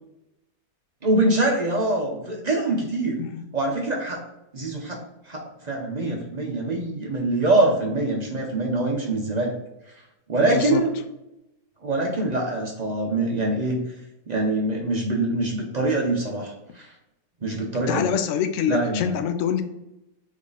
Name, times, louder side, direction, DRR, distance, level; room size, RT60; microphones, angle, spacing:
voice 1, 1.0-3.2 3.5-4.2 4.5-5.0 5.3-9.5 10.3-10.9 11.8-13.8 14.3-16.9 17.4-18.1 18.7-19.1, right 2 dB, 45° right, -1 dB, 0.5 m, -24 dB
voice 2, 10.3-10.8 17.9-19.6, left 8 dB, 70° left, 8 dB, 0.7 m, -25 dB
3.6 x 3.2 x 3.8 m, 0.91 s
omnidirectional pair, 1.7 m